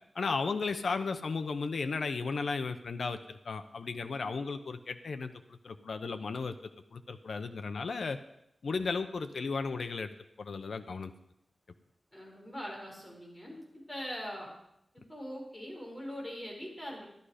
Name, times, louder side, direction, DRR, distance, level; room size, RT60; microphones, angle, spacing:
voice 1, 0.1-6.5 6.9-8.2 8.6-10.1 10.4-11.1, left 4 dB, 80° left, 8 dB, 0.7 m, -35 dB
voice 2, 12.1-14.5 14.9-17.1, equal, 15° left, -1 dB, 5.1 m, -42 dB
13.5 x 11.5 x 5.0 m, 0.80 s
wide cardioid pair, 80°, 0 cm